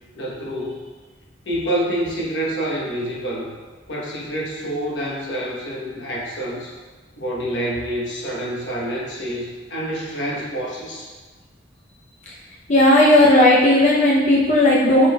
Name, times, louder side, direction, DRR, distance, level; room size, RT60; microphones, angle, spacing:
voice 1, 0.1-0.8 1.5-3.6 3.9-6.7 7.2-11.1, right 1 dB, 85° left, -4 dB, 1.0 m, -27 dB
voice 2, 12.7-15.1, left 1 dB, 40° left, -5 dB, 0.5 m, -14 dB
4.9 x 3.7 x 2.3 m, 1.3 s
head